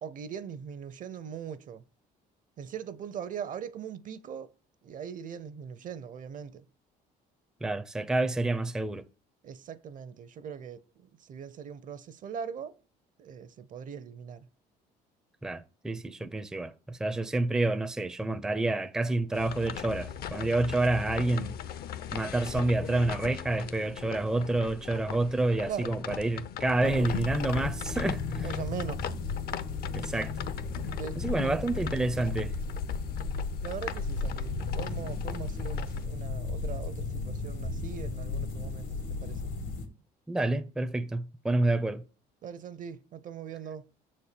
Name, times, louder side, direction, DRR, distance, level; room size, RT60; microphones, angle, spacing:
voice 1, 0.0-1.8 2.6-4.5 4.8-6.6 9.4-12.8 13.2-14.5 25.7-25.9 26.8-27.1 28.4-29.1 31.0-31.7 33.6-39.5 42.4-43.9, right 7 dB, 50° right, 0.7 m, -40 dB
voice 2, 7.6-9.0 15.4-21.6 22.1-28.5 29.9-30.3 31.1-32.5 40.3-42.0, right 2 dB, 5° right, 0.5 m, -28 dB
sound 1, 19.3-36.1, left 9 dB, 65° left, 0.7 m, -40 dB
sound 2, 26.8-39.9, left 4 dB, 90° left, 2.2 m, -35 dB
6.8 x 4.3 x 6.7 m
cardioid pair, 110°, 17 cm